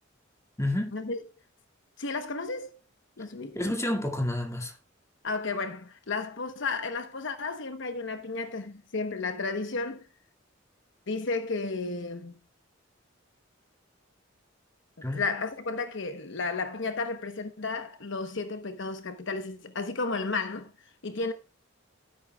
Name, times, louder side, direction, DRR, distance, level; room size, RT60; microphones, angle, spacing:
voice 1, 0.6-1.0 3.5-4.8 15.0-15.2, left 1 dB, 15° left, 2.2 m, -29 dB
voice 2, 2.0-2.7 3.2-3.6 5.2-10.0 11.1-12.4 15.0-20.7 21.0-21.3, left 3 dB, 65° left, 1.0 m, -33 dB
12.5 x 11.0 x 2.3 m
head